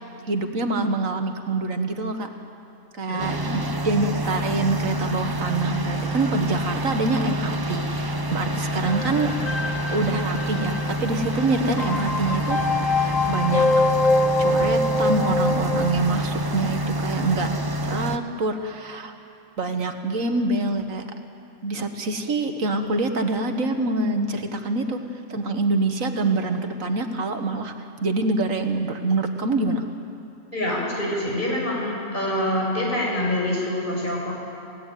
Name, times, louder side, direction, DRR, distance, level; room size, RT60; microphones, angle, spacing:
voice 1, 0.3-2.3 3.0-9.3 9.9-13.7 14.4-17.5 17.8-19.1 19.6-21.0 21.6-25.0 25.3-27.7 28.0-29.8, right 3 dB, 75° right, 6 dB, 1.9 m, -25 dB
sound 1, 3.2-18.2, right 1 dB, 20° right, 0.9 m, -27 dB
sound 2, 8.8-15.9, left 2 dB, 75° left, 1.7 m, -24 dB
voice 2, 30.5-34.3, left 1 dB, 35° left, -3 dB, 6.9 m, -25 dB
28.0 x 17.0 x 9.2 m, 2.6 s
omnidirectional pair, 1.4 m